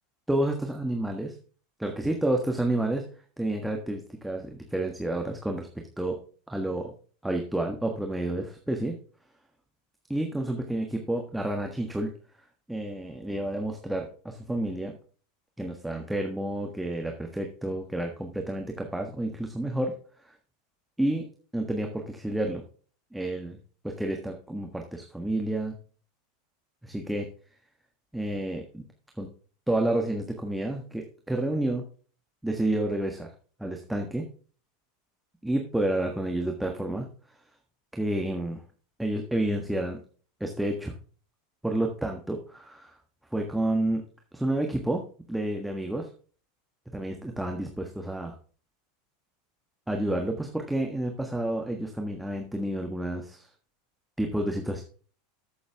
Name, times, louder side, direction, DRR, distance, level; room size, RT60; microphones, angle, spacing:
voice 1, 0.3-1.3 1.8-3.0 3.4-5.7 6.0-6.2 6.5-6.9 7.2-8.9 10.1-12.1 12.7-14.9 15.6-20.0 20.2-20.3 21.0-21.3 21.5-22.6 23.1-23.6 23.8-25.7 26.8-27.3 28.1-28.8 29.2-29.3 29.7-31.8 32.4-33.3 33.6-34.2 35.4-37.1 37.9-38.6 39.0-40.0 40.4-40.9 41.6-42.9 43.3-44.0 44.3-45.0 45.3-46.1 46.9-48.3 49.9-53.5 54.2-54.8, right 1 dB, 5° right, 2 dB, 1.5 m, -30 dB
13.5 x 7.1 x 3.5 m, 0.42 s
figure-of-eight pair, 80°, 0 cm